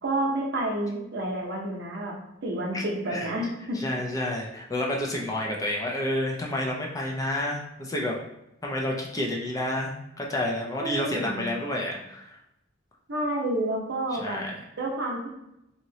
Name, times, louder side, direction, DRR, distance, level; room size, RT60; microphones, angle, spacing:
voice 1, 0.0-2.1 2.4-3.8 10.8-11.5 13.1-14.4 14.8-15.3, right 1 dB, 60° right, -1 dB, 0.7 m, -29 dB
voice 2, 3.7-8.2 8.6-12.4 14.2-14.5, left 1 dB, 20° left, -1 dB, 0.4 m, -30 dB
2.9 x 2.8 x 2.7 m, 0.86 s
head